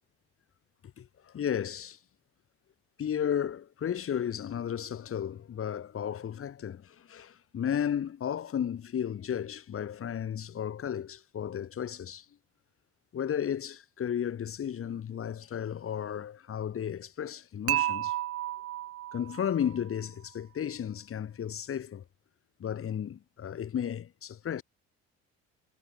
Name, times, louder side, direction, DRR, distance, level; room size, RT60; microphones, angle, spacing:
voice 1, 1.0-2.0 3.0-12.3 13.1-18.1 19.1-22.0 22.6-24.6, left 9 dB, 45° left, 2.0 m, -34 dB
Dishes pots and pans / Chink clink, 17.7-19.8, right 14 dB, 50° right, 0.5 m, -32 dB
supercardioid pair, 75°, 31 cm